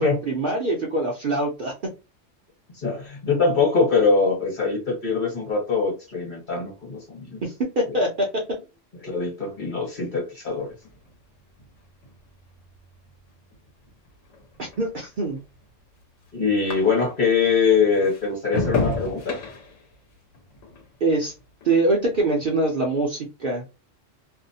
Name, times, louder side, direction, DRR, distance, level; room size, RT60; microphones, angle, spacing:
voice 1, 0.0-1.9 7.4-8.4 14.6-15.4 21.0-21.3 21.6-23.6, right 2 dB, 55° right, 0.6 m, -24 dB
voice 2, 2.7-7.4 9.0-10.7 16.3-19.4, left 5 dB, 40° left, 1.2 m, -23 dB
sound 1, 10.6-17.3 17.7-22.2 22.6-23.0, left 3 dB, 75° left, 1.1 m, -34 dB
2.6 x 2.0 x 2.7 m
omnidirectional pair, 1.3 m